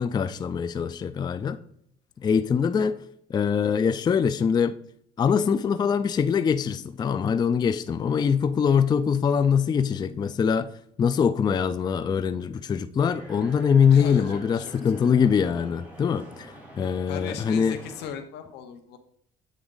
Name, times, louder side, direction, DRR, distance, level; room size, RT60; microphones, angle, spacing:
voice 1, 0.0-1.6 2.2-3.0 3.3-4.7 5.2-10.7 11.0-17.8, left 7 dB, 25° left, 0.3 m, -23 dB
sound 1, 13.0-18.1, right 1 dB, 10° right, 1.8 m, -46 dB
voice 2, 13.9-15.1 17.1-19.0, left 7 dB, 85° left, 0.9 m, -38 dB
7.9 x 3.5 x 3.8 m
cardioid pair, 110°, 17 cm